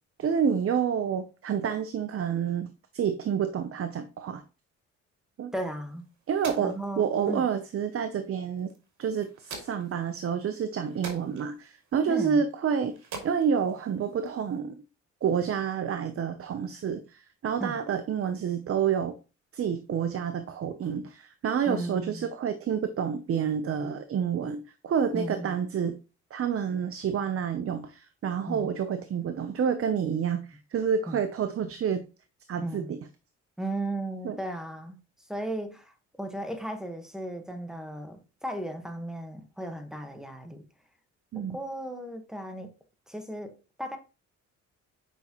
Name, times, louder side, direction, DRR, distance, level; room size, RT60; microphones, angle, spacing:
voice 1, 0.2-4.4 5.4-5.5 6.3-8.7 9.0-12.9 13.2-14.8 15.2-19.1 19.5-25.9 26.3-32.0 32.5-33.0 34.2-34.4 41.3-41.6, right 7 dB, 50° right, 0.8 m, -29 dB
voice 2, 5.5-6.1 6.6-7.4 12.1-12.4 17.6-17.8 21.7-22.3 25.1-25.6 28.5-28.7 31.1-31.2 32.6-32.9 33.6-35.0 35.3-35.9 36.2-40.6 41.3-42.7 43.1-44.0, right 1 dB, ahead, 1.4 m, -35 dB
sound 1, 5.6-14.6, right 4 dB, 70° right, 2.6 m, -47 dB
8.3 x 5.4 x 3.0 m
cardioid pair, 90°, 30 cm